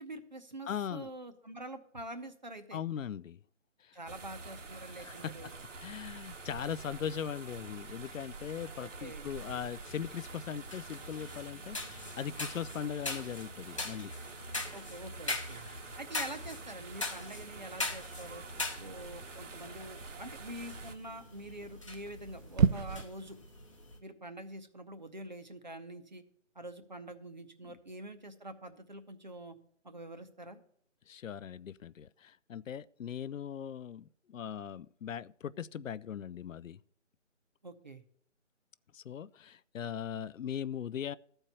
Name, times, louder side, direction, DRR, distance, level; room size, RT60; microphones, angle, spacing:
voice 1, 0.0-2.8 3.9-5.5 8.8-9.3 14.7-15.6 16.0-18.4 18.8-23.4 24.0-26.2 26.5-29.6 29.8-30.6 37.6-38.0, right 1 dB, 35° right, 0.7 m, -46 dB
voice 2, 0.7-1.1 2.7-3.4 3.8-4.0 4.9-5.3 5.8-14.1 15.7-15.9 31.1-36.8 38.9-41.2, left 8 dB, 80° left, 0.5 m, -40 dB
sound 1, 4.1-20.9, right 3 dB, 70° right, 1.2 m, -47 dB
sound 2, 9.3-24.0, left 2 dB, 25° left, 0.9 m, -43 dB
sound 3, 15.7-23.1, right 7 dB, 85° right, 0.6 m, -37 dB
13.5 x 4.5 x 8.1 m
figure-of-eight pair, 175°, 38 cm